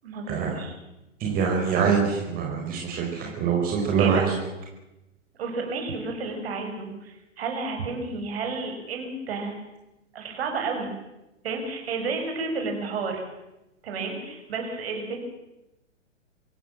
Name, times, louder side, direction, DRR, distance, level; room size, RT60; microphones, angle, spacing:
voice 1, 0.0-0.8 4.0-4.4 5.4-9.6 10.1-10.9 11.4-13.2 13.8-15.2, right 4 dB, 55° right, 3 dB, 7.0 m, -31 dB
voice 2, 1.2-4.3, right 6 dB, 25° right, -1 dB, 4.7 m, -24 dB
25.5 x 16.0 x 7.7 m, 0.96 s
figure-of-eight pair, 120°, 37 cm